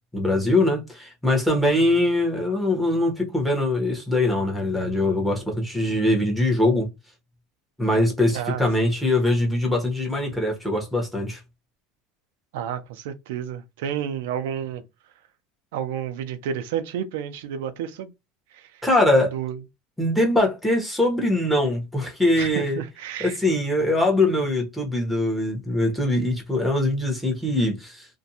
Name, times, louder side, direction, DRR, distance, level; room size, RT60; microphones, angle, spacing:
voice 1, 0.1-6.9 7.8-11.4 18.8-19.3 20.0-22.8 23.2-28.1, left 1 dB, ahead, 1.0 m, -22 dB
voice 2, 8.3-8.6 12.5-14.8 15.7-18.1 18.5-18.8 19.3-19.6 22.4-23.4, right 9 dB, 85° right, 0.4 m, -31 dB
2.5 x 2.2 x 2.8 m
supercardioid pair, 140°, 0 cm